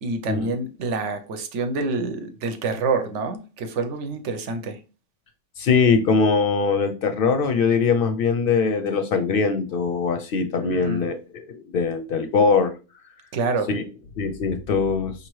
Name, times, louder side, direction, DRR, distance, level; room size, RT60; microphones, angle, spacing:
voice 1, 0.0-4.8 10.6-11.1 13.3-13.7, right 3 dB, 85° right, 1.0 m, -27 dB
voice 2, 5.6-12.7 13.7-13.8 14.2-15.1, left 5 dB, 60° left, 0.6 m, -22 dB
4.9 x 2.9 x 3.0 m
omnidirectional pair, 1.2 m